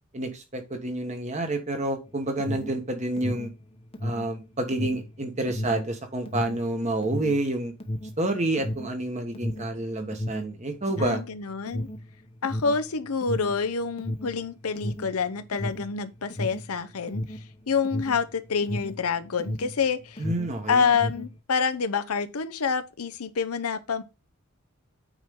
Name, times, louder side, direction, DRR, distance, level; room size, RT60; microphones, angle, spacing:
voice 1, 0.1-3.5 4.0-7.7 8.2-11.2 20.2-20.8, right 1 dB, 30° right, 1.3 m, -29 dB
Alarm, 2.1-19.8 20.1-21.4, left 1 dB, 25° left, 0.9 m, -34 dB
voice 2, 11.0-11.9 12.4-17.4 17.7-20.2 20.7-24.0, left 5 dB, 85° left, 0.7 m, -27 dB
9.0 x 4.5 x 3.7 m
head